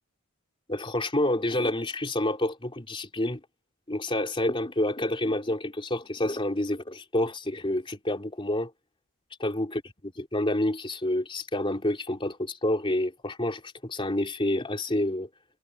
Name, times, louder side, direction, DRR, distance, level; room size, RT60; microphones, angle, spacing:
voice 1, 0.7-3.4 3.9-8.7 9.4-15.3, left 1 dB, 25° left, 3.4 m, -28 dB
head